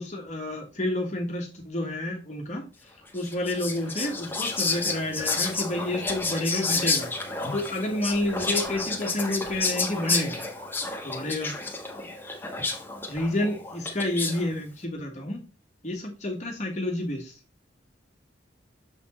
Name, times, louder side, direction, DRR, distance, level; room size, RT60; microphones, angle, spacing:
voice 1, 0.0-7.1 7.5-10.4 11.0-11.5 13.1-15.4 15.8-17.4, left 1 dB, 40° left, 0 dB, 1.4 m, -30 dB
Whispering, 3.2-14.5, left 3 dB, 10° left, 1.3 m, -30 dB
7.2 x 4.3 x 4.2 m, 0.31 s
head